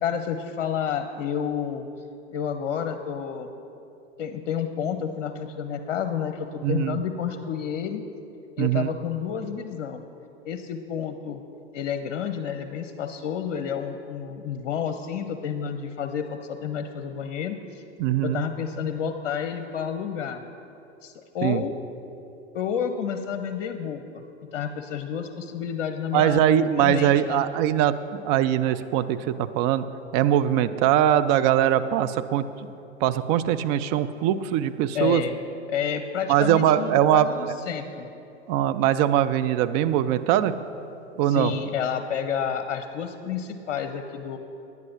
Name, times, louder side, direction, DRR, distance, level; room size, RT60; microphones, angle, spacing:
voice 1, 0.0-1.9 2.3-3.5 4.2-8.0 8.6-10.0 10.4-11.4 11.7-17.8 18.2-20.4 21.0-21.7 22.5-24.2 24.5-27.4 34.9-35.3 35.7-38.1 41.3-44.4, left 8 dB, 55° left, 8 dB, 0.8 m, -30 dB
voice 2, 6.6-7.0 8.6-8.9 18.0-18.4 21.4-21.6 26.1-29.8 30.1-32.7 33.0-35.2 36.3-37.3 38.5-40.6 41.2-41.5, right 11 dB, 35° right, 12 dB, 0.5 m, -22 dB
10.5 x 9.7 x 5.8 m, 2.8 s
figure-of-eight pair, 95°, 36 cm